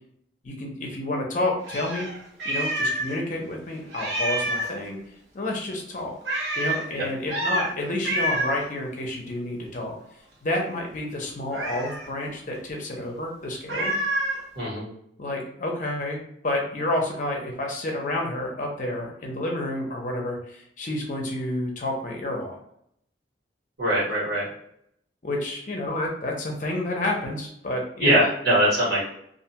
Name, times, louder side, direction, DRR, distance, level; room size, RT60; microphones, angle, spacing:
voice 1, 0.4-2.1 2.4-5.0 5.3-6.1 6.6-9.9 10.4-13.9 15.2-22.6 25.2-28.2, left 1 dB, 45° left, 0 dB, 0.7 m, -29 dB
Meow, 1.6-3.2 3.4-3.5 3.9-4.8 6.2-6.9 7.3-7.7 8.0-8.7 11.5-12.1 13.7-14.4, right 1 dB, 85° right, 0.9 m, -27 dB
voice 2, 14.6-14.9 23.8-24.4 28.0-29.0, right 1 dB, 60° right, -6 dB, 1.3 m, -22 dB
2.5 x 2.3 x 2.8 m, 0.71 s
head